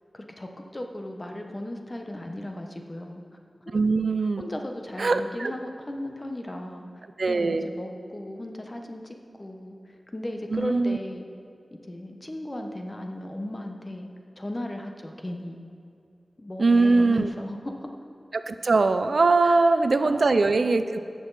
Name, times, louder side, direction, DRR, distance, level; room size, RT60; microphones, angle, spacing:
voice 1, 0.1-3.2 3.7-3.8 4.4-9.8 10.1-11.3 11.9-14.1 14.4-15.6 16.4-17.9 19.4-19.7 20.0-20.6, left 1 dB, 30° left, 3 dB, 1.0 m, -36 dB
voice 2, 3.7-4.4 5.0-5.5 7.2-7.7 10.5-11.0 16.6-17.3 18.3-21.0, right 3 dB, 75° right, 10 dB, 0.4 m, -21 dB
16.5 x 6.2 x 4.1 m, 2.5 s
wide cardioid pair, 55°, 0 cm